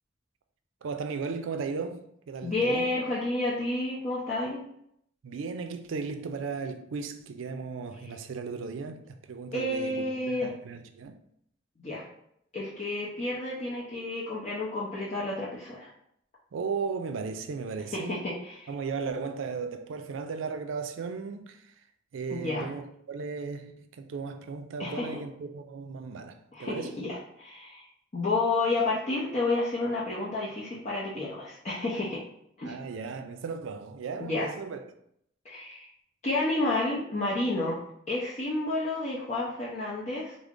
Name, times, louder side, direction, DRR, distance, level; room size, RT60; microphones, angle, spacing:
voice 1, 0.8-2.9 5.2-11.2 16.5-18.2 18.7-21.6 22.1-22.8 23.1-27.0 32.6-34.8, right 5 dB, 75° right, 0.4 m, -36 dB
voice 2, 2.4-4.6 9.5-10.5 11.8-12.0 12.5-15.9 17.9-18.7 22.3-22.7 24.8-25.2 26.5-27.9 28.1-32.2 32.6-32.8 34.2-34.5 35.4-35.9 36.2-37.8 38.1-40.4, left 2 dB, 35° left, 0.5 m, -30 dB
3.6 x 2.0 x 3.5 m
head